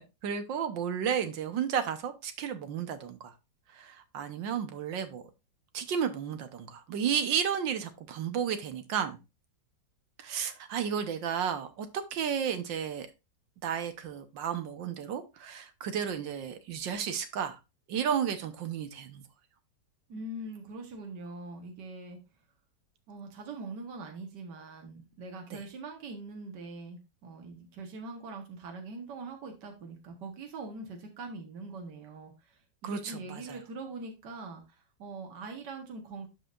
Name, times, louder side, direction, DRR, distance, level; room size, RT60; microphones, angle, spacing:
voice 1, 0.0-3.3 3.7-5.2 5.7-9.2 10.2-13.1 13.6-17.6 17.9-19.2 25.5-25.6 32.8-33.6, right 8 dB, 90° right, 1.8 m, -33 dB
voice 2, 20.1-22.2 23.1-36.3, right 3 dB, 70° right, 1.9 m, -43 dB
12.0 x 5.0 x 2.5 m
omnidirectional pair, 2.0 m